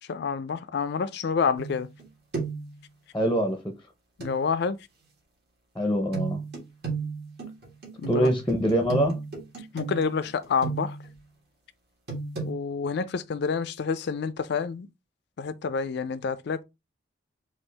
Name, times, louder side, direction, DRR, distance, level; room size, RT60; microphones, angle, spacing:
voice 1, 0.1-1.9 4.2-4.8 8.0-8.3 9.7-11.0 12.5-14.9 15.4-16.6, left 5 dB, 60° left, 0.4 m, -28 dB
sound 1, 1.6-2.0 2.3-2.7 4.2-4.4 6.1-11.1 12.1-12.5, right 4 dB, 60° right, 1.7 m, -34 dB
voice 2, 3.1-3.6 5.8-6.4 8.1-9.2, equal, 10° left, 0.6 m, -24 dB
4.5 x 2.4 x 3.2 m
head